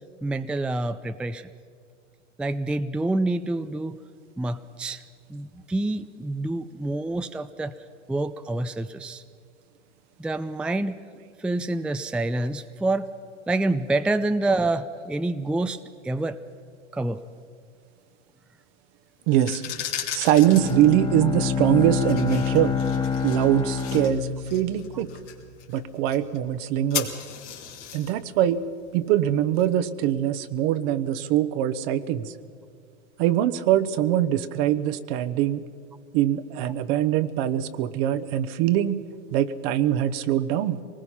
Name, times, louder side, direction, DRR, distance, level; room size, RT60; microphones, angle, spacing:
voice 1, 0.2-1.5 2.4-4.0 4.4-5.0 5.3-7.7 8.1-9.2 10.2-11.0 11.4-13.1 13.5-16.4 16.9-17.2 24.9-25.0, right 2 dB, 5° right, 10 dB, 0.5 m, -27 dB
sound 1, 19.2-30.1, left 9 dB, 80° left, 3.0 m, -38 dB
voice 2, 19.3-19.6 20.1-22.8 23.2-25.1 25.7-27.1 27.9-28.6 28.9-32.3 33.2-35.6 36.1-39.0 39.3-40.8, right 12 dB, 55° right, 13 dB, 1.1 m, -23 dB
Bowed string instrument, 20.4-25.4, left 6 dB, 15° left, 1.5 m, -27 dB
24.5 x 19.5 x 5.8 m, 2.1 s
hypercardioid pair, 95°, 36 cm